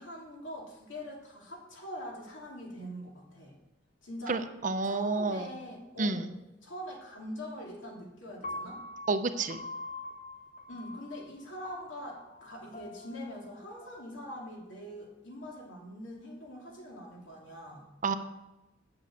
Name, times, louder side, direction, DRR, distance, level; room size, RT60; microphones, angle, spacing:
voice 1, 0.0-3.5 4.0-4.4 4.8-6.3 6.6-8.8 10.7-17.8, equal, 75° left, -2 dB, 2.7 m, -43 dB
voice 2, 4.3-5.5 6.0-6.2 9.1-9.6 18.0-18.2, right 3 dB, 40° right, 10 dB, 0.6 m, -30 dB
Piano, 8.4-14.6, left 2 dB, 35° left, 0.7 m, -45 dB
7.4 x 7.1 x 8.1 m, 0.99 s
head